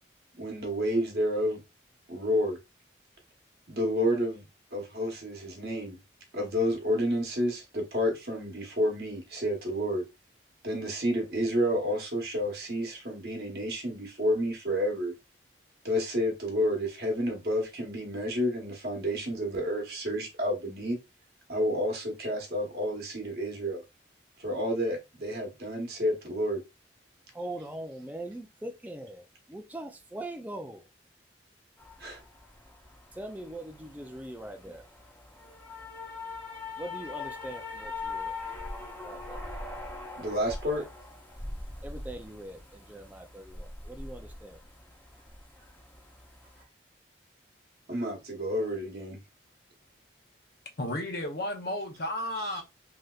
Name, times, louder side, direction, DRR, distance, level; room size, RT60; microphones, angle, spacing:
voice 1, 0.4-1.6 2.1-2.6 3.7-4.5 4.7-6.0 6.3-10.0 10.6-15.1 15.8-21.0 21.5-23.8 24.4-26.6 32.0-32.2 40.2-40.8 47.9-49.2 52.3-52.6, equal, 55° right, 1.1 m, -30 dB
voice 2, 27.3-30.9 33.1-34.9 36.8-38.4 39.0-39.4 40.2-40.5 40.8-40.9 41.8-44.6, right 1 dB, 10° right, 0.4 m, -42 dB
sound 1, 31.8-46.6, left 3 dB, 10° left, 0.7 m, -42 dB
voice 3, 50.8-52.6, left 1 dB, 55° left, 0.7 m, -33 dB
3.3 x 2.8 x 2.3 m
head